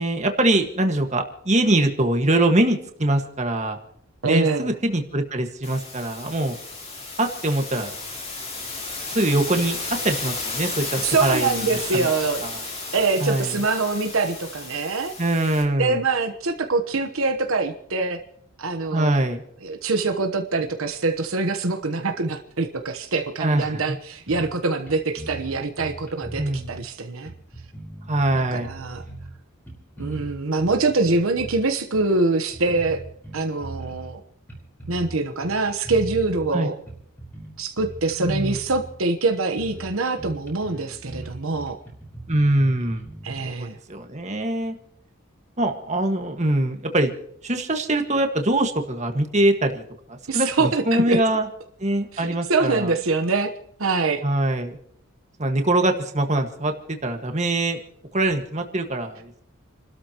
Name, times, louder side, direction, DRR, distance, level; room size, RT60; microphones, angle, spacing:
voice 1, 0.0-3.8 4.2-6.6 7.2-7.9 9.1-9.8 10.0-11.7 11.9-12.1 12.4-12.6 13.2-13.6 15.2-16.0 18.9-19.4 23.4-23.8 26.4-26.8 28.1-28.7 36.5-36.7 38.2-38.6 42.3-43.1 43.5-44.8 45.6-47.1 47.4-49.8 50.1-51.5 51.8-52.9 54.2-54.8 55.4-57.8 58.1-59.4, right 1 dB, 35° right, 5 dB, 1.7 m, -23 dB
voice 2, 4.2-4.7 11.0-12.4 12.9-15.1 15.8-18.2 18.6-19.2 19.6-27.3 28.3-29.0 30.0-33.0 33.3-34.2 34.9-36.7 37.6-41.8 43.2-43.8 50.3-51.2 52.1-53.5 53.8-54.2, right 3 dB, 75° right, 6 dB, 1.1 m, -24 dB
sound 1, 5.6-15.6, left 3 dB, 30° left, 3.6 m, -33 dB
sound 2, 24.3-24.6 24.9-25.0 25.2-26.8 27.2-29.3 29.7-31.6 31.9-32.1 32.5-34.2 34.5-35.1 35.4-36.5 36.9-38.9 39.3-39.4 39.6-39.9 40.2-43.5, right 2 dB, 10° left, 4.4 m, -38 dB
29.5 x 12.5 x 3.0 m, 0.72 s
head